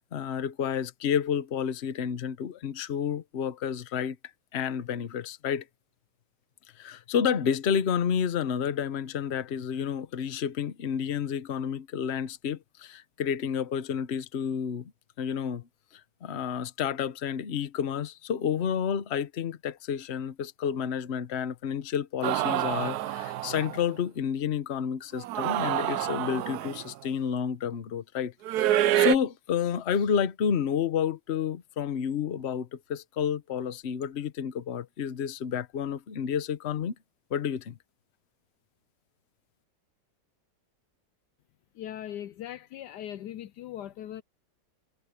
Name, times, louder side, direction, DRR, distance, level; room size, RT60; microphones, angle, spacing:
voice 1, 0.0-4.2 4.5-5.6 6.8-14.9 15.2-15.7 16.2-36.9 37.3-37.8, left 8 dB, 45° left, 1.0 m, -30 dB
sound 1, 22.2-23.8 25.2-26.9 28.5-29.2, right 13 dB, 70° right, 1.0 m, -27 dB
voice 2, 41.8-44.2, left 11 dB, 75° left, 1.1 m, -39 dB
omnidirectional pair, 2.0 m